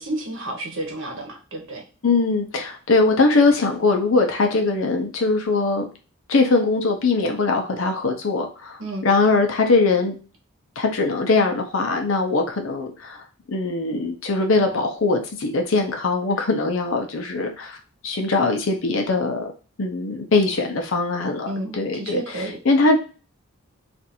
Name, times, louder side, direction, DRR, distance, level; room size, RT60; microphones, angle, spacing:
voice 1, 0.0-1.8 8.8-9.1 21.5-22.6, right 1 dB, 65° right, 1 dB, 0.9 m, -31 dB
voice 2, 2.0-5.9 6.3-10.2 10.8-13.2 13.5-17.8 18.0-19.5 19.8-21.5 21.7-22.2 22.7-23.0, left 3 dB, 65° left, 3 dB, 0.7 m, -21 dB
2.5 x 2.5 x 4.2 m, 0.35 s
head